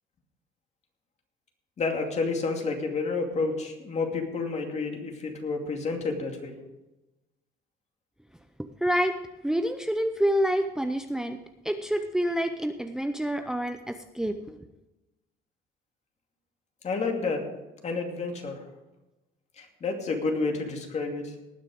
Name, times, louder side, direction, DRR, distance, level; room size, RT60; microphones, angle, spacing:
voice 1, 1.8-6.5 16.8-17.4 17.8-18.6 19.6-21.3, left 4 dB, 40° left, 3 dB, 2.5 m, -30 dB
voice 2, 8.8-9.2 9.4-11.4 11.6-14.6, equal, 5° right, 7 dB, 0.6 m, -27 dB
19.0 x 6.6 x 5.0 m, 1.0 s
cardioid pair, 110°, 17 cm